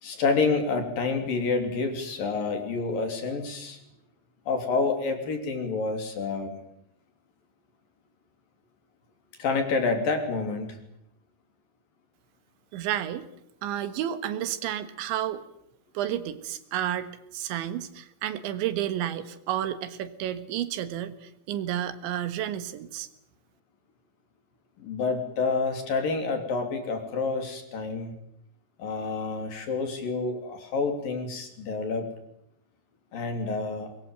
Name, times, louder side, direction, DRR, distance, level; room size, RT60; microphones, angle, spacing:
voice 1, 0.0-3.8 4.5-6.6 9.4-10.8 24.8-28.2 28.8-32.1 33.1-33.9, left 4 dB, 50° left, 6 dB, 4.7 m, -28 dB
voice 2, 12.7-13.3 13.6-15.4 16.0-23.1, right 11 dB, 85° right, 12 dB, 3.9 m, -31 dB
23.5 x 22.0 x 9.2 m, 0.73 s
omnidirectional pair, 5.2 m